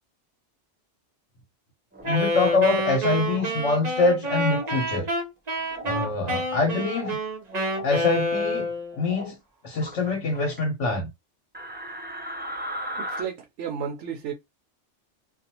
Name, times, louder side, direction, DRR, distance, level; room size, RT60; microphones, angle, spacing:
sound 1, 1.9-2.5 3.2-3.5 4.3-4.8 5.7-6.1 6.6-7.2 7.5-7.9 8.9-9.3 9.7-10.6 11.5-13.2, equal, 15° right, 0.4 m, -37 dB
voice 1, 2.0-5.1 5.8-7.2 7.8-8.7 9.0-9.4 9.6-11.1, left 3 dB, 80° left, 1.2 m, -24 dB
Wind instrument woodwind instrument, 2.0-9.0, equal, 40° right, 0.8 m, -28 dB
voice 2, 13.0-14.3, right 7 dB, 75° right, 0.9 m, -33 dB
2.5 x 2.3 x 2.8 m
omnidirectional pair, 1.2 m